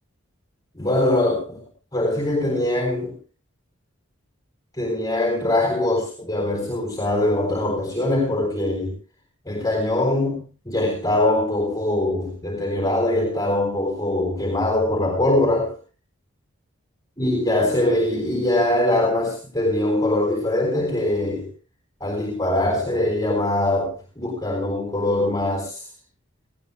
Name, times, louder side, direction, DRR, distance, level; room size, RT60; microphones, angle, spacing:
voice 1, 0.7-1.6 1.9-3.1 4.8-8.9 9.5-15.7 17.2-21.5 22.0-25.9, left 1 dB, 15° left, 1 dB, 3.8 m, -22 dB
18.0 x 18.0 x 2.3 m, 0.34 s
head